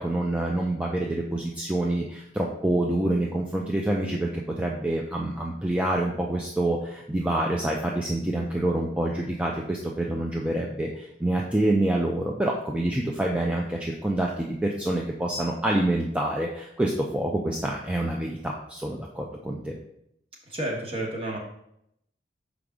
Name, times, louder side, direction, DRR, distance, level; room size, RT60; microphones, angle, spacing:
voice 1, 0.0-19.7, right 1 dB, 5° right, -1 dB, 0.4 m, -27 dB
voice 2, 20.5-21.4, right 1 dB, 30° right, 0 dB, 1.3 m, -30 dB
6.3 x 5.0 x 3.6 m, 0.77 s
head